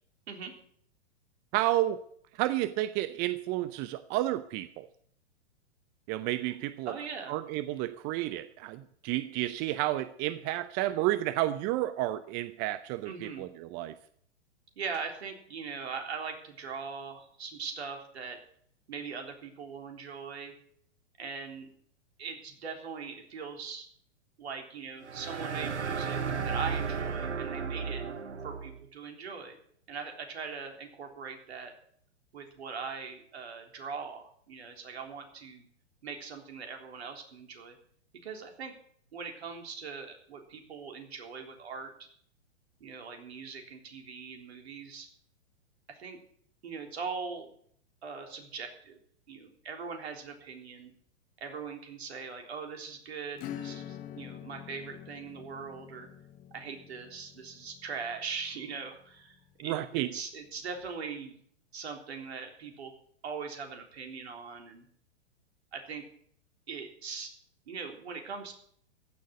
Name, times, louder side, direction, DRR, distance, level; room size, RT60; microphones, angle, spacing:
voice 1, 1.5-2.0 2.4-4.9 6.1-6.9 7.3-13.9 59.6-60.1, right 15 dB, 25° right, 13 dB, 0.6 m, -31 dB
voice 2, 6.9-7.4 13.1-13.5 14.8-18.4 18.9-20.6 21.2-21.7 22.2-23.9 24.4-28.0 28.4-29.6 29.9-31.7 32.3-35.6 36.0-37.8 38.2-38.7 39.1-42.1 42.8-45.1 45.9-46.2 46.6-47.5 48.0-49.0 49.3-50.9 51.4-56.1 56.5-61.4 61.7-62.9 63.2-64.8 65.7-66.0 66.7-67.3 67.7-68.5, right 5 dB, 65° right, 4 dB, 3.6 m, -41 dB
sound 1, 25.0-28.8, right 6 dB, 90° right, 1.0 m, -34 dB
Acoustic guitar / Strum, 53.4-59.6, left 10 dB, 25° left, 1.0 m, -46 dB
15.0 x 6.6 x 9.4 m, 0.63 s
figure-of-eight pair, 115°, 34 cm